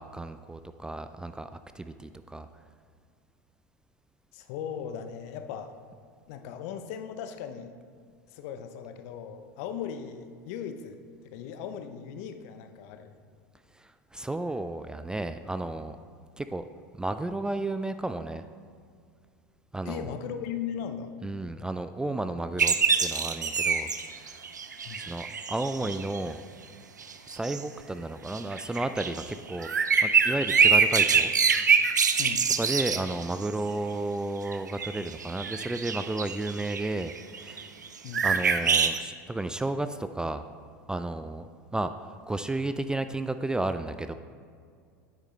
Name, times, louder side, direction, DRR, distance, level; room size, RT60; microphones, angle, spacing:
voice 1, 0.0-1.5 1.7-2.5 13.8-16.0 16.4-16.6 17.0-18.4 19.7-20.1 21.2-22.7 23.0-24.4 25.0-26.4 27.3-31.3 32.6-37.1 37.4-37.7 38.2-40.4 40.9-41.5 41.7-41.9 42.3-44.1, right 2 dB, 10° right, 10 dB, 0.3 m, -32 dB
voice 2, 4.3-5.8 6.3-7.7 8.3-11.0 11.3-13.2 19.8-21.1 21.5-21.7 24.8-25.0 32.2-32.5 38.0-38.3, left 8 dB, 60° left, 8 dB, 0.7 m, -38 dB
sound 1, 22.6-26.2 27.0-27.6 28.3-33.5 34.5-37.9 38.1-39.0, right 6 dB, 90° right, 0.4 m, -25 dB
9.7 x 8.3 x 3.2 m, 2.1 s
hypercardioid pair, 80°, 9 cm